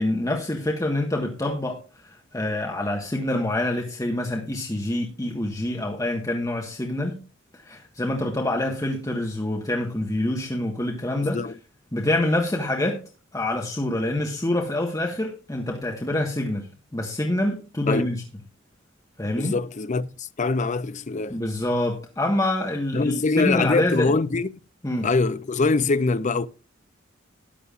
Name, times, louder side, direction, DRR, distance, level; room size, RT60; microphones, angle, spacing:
voice 1, 0.0-7.2 7.5-11.5 11.9-13.0 13.3-18.2 19.2-19.6 21.3-24.1 24.8-25.1, left 1 dB, 15° left, 1.5 m, -26 dB
voice 2, 19.3-21.4 22.9-24.5 25.0-26.5, left 3 dB, 40° left, 0.5 m, -23 dB
14.0 x 11.0 x 2.5 m
head